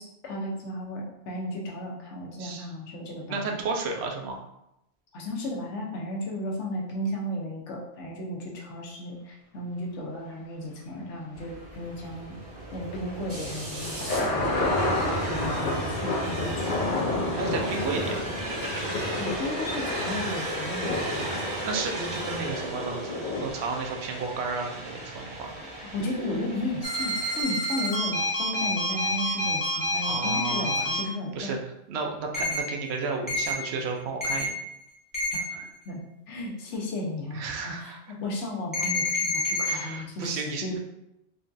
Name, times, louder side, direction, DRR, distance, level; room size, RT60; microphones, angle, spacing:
voice 1, 0.0-3.6 5.1-12.3 12.7-14.8 15.3-17.1 19.2-21.4 25.6-31.5 35.3-36.0 36.3-40.8, left 1 dB, 80° left, -1 dB, 1.0 m, -34 dB
voice 2, 2.3-2.7 3.3-4.4 17.3-18.2 21.6-23.0 23.4-25.5 30.0-31.0 31.3-31.6 31.9-34.5 37.3-38.0 39.6-40.7, right 4 dB, 65° right, 2 dB, 0.8 m, -32 dB
sound 1, 11.3-27.4, right 2 dB, 35° right, 0.6 m, -35 dB
sound 2, 13.3-23.5, left 2 dB, 60° left, 0.6 m, -31 dB
sound 3, 26.8-31.0 32.3-32.6 33.3-33.5 34.2-34.5 35.1-35.4 38.7-39.7, left 1 dB, 20° left, 0.7 m, -28 dB
3.7 x 2.3 x 2.5 m, 0.84 s
omnidirectional pair, 1.2 m